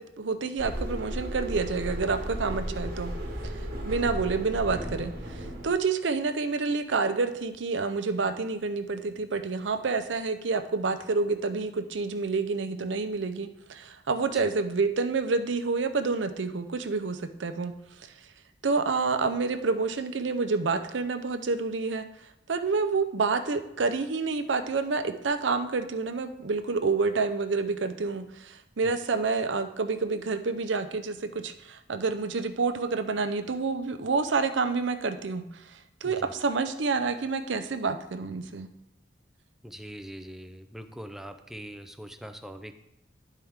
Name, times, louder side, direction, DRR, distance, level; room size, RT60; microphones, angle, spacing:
voice 1, 0.0-3.1 3.8-18.1 18.6-22.0 22.5-38.7, right 4 dB, 85° right, 8 dB, 0.6 m, -28 dB
sound 1, 0.6-5.7, right 1 dB, 55° right, 1.3 m, -34 dB
voice 2, 36.0-36.4 39.6-42.7, equal, ahead, 8 dB, 0.4 m, -42 dB
11.0 x 4.5 x 3.6 m, 0.82 s
head